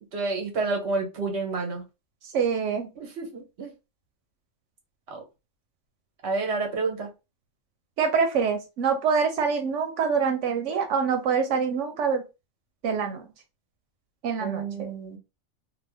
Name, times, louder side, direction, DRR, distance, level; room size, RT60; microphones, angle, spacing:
voice 1, 0.1-1.8 3.0-3.7 5.1-5.2 6.2-7.1 14.4-15.2, right 3 dB, 65° right, 2 dB, 1.2 m, -29 dB
voice 2, 2.3-2.9 8.0-12.2 12.8-13.2 14.2-14.6, right 6 dB, 85° right, 5 dB, 0.9 m, -25 dB
2.7 x 2.2 x 3.3 m, 0.26 s
omnidirectional pair, 1.2 m